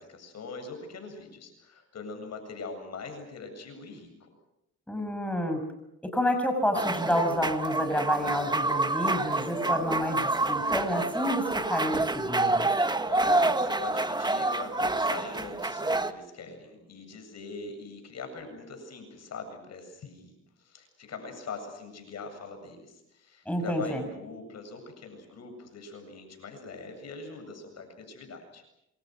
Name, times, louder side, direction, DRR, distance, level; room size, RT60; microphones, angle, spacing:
voice 1, 0.0-4.3 13.1-20.3 20.6-28.6, left 4 dB, 60° left, 6 dB, 7.9 m, -42 dB
voice 2, 4.9-5.6 6.0-12.7 23.5-24.0, equal, 5° left, 5 dB, 6.1 m, -29 dB
sound 1, 6.7-16.1, right 2 dB, 15° right, 1.4 m, -28 dB
27.5 x 26.0 x 6.3 m, 0.84 s
cardioid pair, 90°, 30 cm